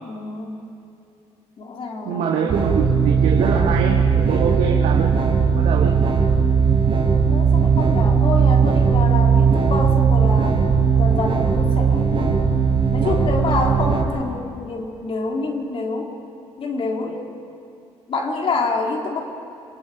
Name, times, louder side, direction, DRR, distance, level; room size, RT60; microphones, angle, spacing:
voice 1, 0.0-0.6 1.6-2.5 7.3-10.6 10.9-12.4 12.9-16.1 16.6-17.2 18.1-19.2, left 3 dB, 50° left, 1 dB, 3.7 m, -27 dB
voice 2, 2.0-5.1 5.5-5.9 9.3-9.6, right 6 dB, 80° right, -1 dB, 2.1 m, -24 dB
sound 1, 2.5-14.0, right 6 dB, 50° right, 4.3 m, -18 dB
29.0 x 20.5 x 5.2 m, 2.5 s
cardioid pair, 85°, 12 cm